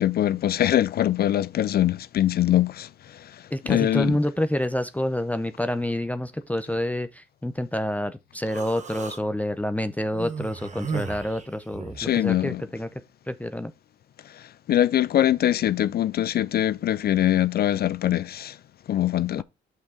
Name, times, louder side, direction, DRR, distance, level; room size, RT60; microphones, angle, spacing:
voice 1, 0.0-3.3 3.6-4.2 12.0-12.6 14.3-14.4 14.7-18.6 18.9-19.4, left 12 dB, 55° left, 0.4 m, -23 dB
voice 2, 3.5-12.9 13.3-13.7 19.4-19.5, left 1 dB, 5° left, 0.6 m, -28 dB
Human voice, 8.5-9.2 10.1-12.1, right 5 dB, 35° right, 1.0 m, -35 dB
5.8 x 4.6 x 4.8 m
cardioid pair, 90°, 20 cm